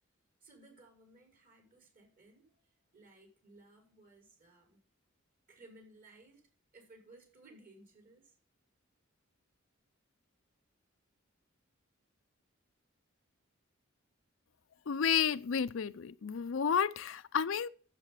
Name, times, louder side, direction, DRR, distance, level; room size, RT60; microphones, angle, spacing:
voice 1, 0.4-2.6 2.9-4.8 5.5-6.5 6.7-8.4, right 2 dB, 45° right, 5.8 m, -59 dB
voice 2, 14.9-17.7, left 7 dB, 70° left, 0.5 m, -31 dB
9.9 x 8.3 x 5.7 m
head